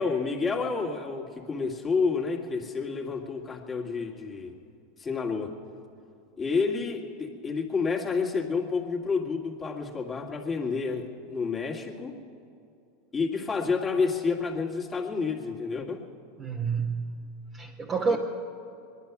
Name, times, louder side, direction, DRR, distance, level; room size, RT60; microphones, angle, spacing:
voice 1, 0.0-4.5 5.0-5.5 6.4-12.1 13.1-16.0 18.1-18.2, left 4 dB, 20° left, 0 dB, 2.1 m, -29 dB
voice 2, 16.4-18.2, right 5 dB, 25° right, -1 dB, 1.3 m, -29 dB
21.5 x 11.0 x 6.0 m, 2.5 s
hypercardioid pair, 100°, 0 cm